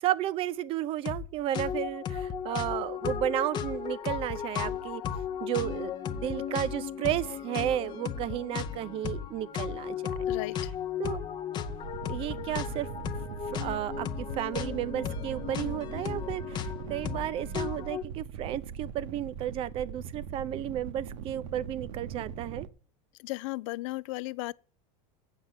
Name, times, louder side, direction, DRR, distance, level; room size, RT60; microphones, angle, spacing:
voice 1, 0.0-5.0 5.4-10.1 11.0-11.2 12.1-12.9 13.5-22.7, right 12 dB, 30° right, 0.5 m, -33 dB
sound 1, 1.0-1.3 1.5-18.0, left 8 dB, 25° left, 0.7 m, -35 dB
voice 2, 10.3-10.7 23.2-24.5, left 21 dB, 65° left, 0.4 m, -35 dB
sound 2, 11.7-22.7, right 7 dB, 65° right, 0.8 m, -41 dB
8.1 x 6.6 x 7.2 m
supercardioid pair, 160°, 18 cm